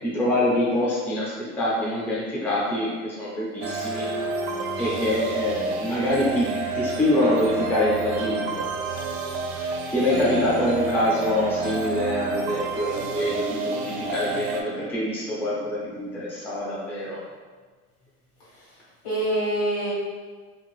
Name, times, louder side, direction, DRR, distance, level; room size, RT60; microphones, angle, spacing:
voice 1, 0.0-4.1 4.8-8.7 9.6-17.2, left 1 dB, 5° left, -7 dB, 0.4 m, -25 dB
sound 1, 3.6-14.6, right 4 dB, 90° right, 0.5 m, -30 dB
voice 2, 10.1-10.7 19.0-19.9, right 1 dB, 75° left, -7 dB, 1.5 m, -26 dB
2.7 x 2.3 x 2.9 m, 1.4 s
cardioid pair, 155°, 32 cm